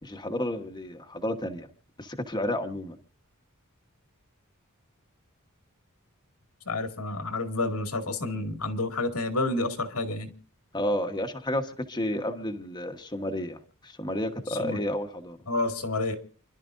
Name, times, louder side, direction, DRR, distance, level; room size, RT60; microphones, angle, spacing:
voice 1, 0.0-1.7 2.0-3.0 10.7-15.4, left 1 dB, 20° left, 4 dB, 1.2 m, -31 dB
voice 2, 6.7-10.3 14.6-14.8 15.5-16.2, left 2 dB, 85° left, 5 dB, 2.2 m, -29 dB
29.5 x 12.0 x 2.6 m, 0.35 s
head